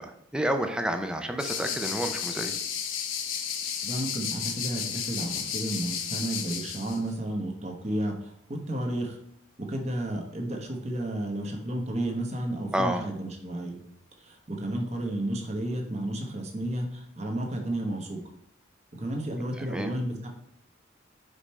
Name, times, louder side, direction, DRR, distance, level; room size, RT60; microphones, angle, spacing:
voice 1, 0.0-2.5 12.7-13.0 19.7-19.9, right 1 dB, 5° right, 6 dB, 0.5 m, -29 dB
sound 1, 1.4-7.0, left 8 dB, 80° left, 0.8 m, -33 dB
voice 2, 3.8-9.2 9.7-13.8 14.2-18.2 19.0-20.3, right 1 dB, 35° right, 2 dB, 1.1 m, -32 dB
5.2 x 4.9 x 4.3 m, 0.77 s
head